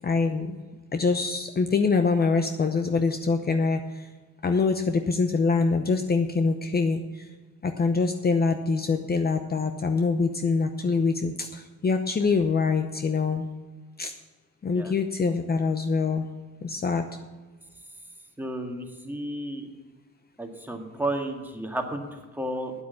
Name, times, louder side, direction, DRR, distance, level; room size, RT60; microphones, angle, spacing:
voice 1, 0.0-0.6 0.9-4.1 4.4-7.3 7.6-13.5 14.0-14.1 14.6-16.3 16.6-17.1, left 4 dB, 30° left, 7 dB, 0.8 m, -24 dB
voice 2, 18.4-19.7 20.4-22.7, right 1 dB, 5° right, 2 dB, 1.9 m, -32 dB
9.1 x 8.2 x 8.4 m, 1.3 s
cardioid pair, 90°, 30 cm